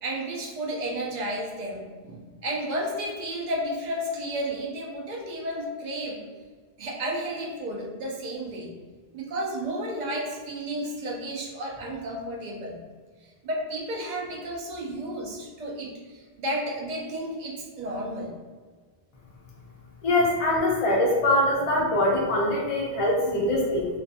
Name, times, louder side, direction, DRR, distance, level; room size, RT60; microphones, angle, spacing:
voice 1, 0.0-6.3 6.8-8.7 9.1-12.8 13.4-18.3 22.9-23.5, right 1 dB, 55° right, -2 dB, 0.5 m, -32 dB
voice 2, 20.0-23.9, left 1 dB, 55° left, -3 dB, 0.4 m, -23 dB
2.4 x 2.3 x 2.6 m, 1.5 s
omnidirectional pair, 1.1 m